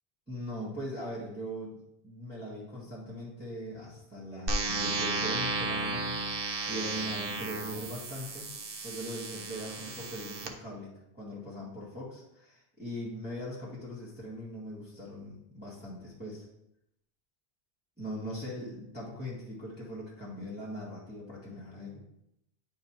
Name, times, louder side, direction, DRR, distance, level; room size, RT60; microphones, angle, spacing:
voice 1, 0.3-8.5 8.8-16.5 18.0-22.0, equal, 10° right, -9 dB, 1.9 m, -40 dB
sound 1, 4.5-10.5, right 3 dB, 65° right, 1.0 m, -34 dB
10.0 x 4.8 x 2.9 m, 0.81 s
omnidirectional pair, 1.0 m